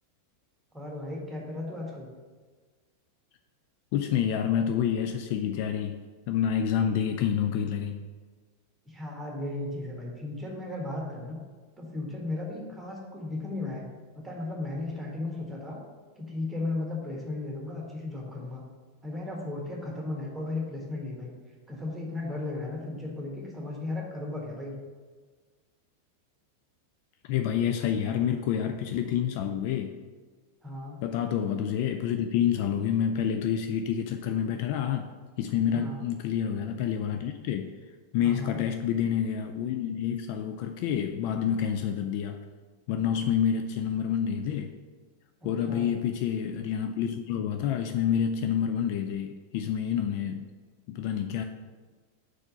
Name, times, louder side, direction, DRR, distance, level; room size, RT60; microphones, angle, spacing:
voice 1, 0.7-2.1 8.8-11.4 11.8-13.9 14.1-15.8 16.2-18.6 19.0-21.3 21.7-24.8 30.6-31.0 35.7-36.0 38.2-38.6 45.6-45.8, left 2 dB, 5° right, -2 dB, 1.6 m, -35 dB
voice 2, 3.9-8.1 27.2-30.0 31.0-35.1 35.4-37.7 38.1-42.4 42.9-44.7 45.4-50.5 50.9-51.4, left 8 dB, 45° left, 6 dB, 0.3 m, -28 dB
4.8 x 4.3 x 5.4 m, 1.4 s
figure-of-eight pair, 90°, 0 cm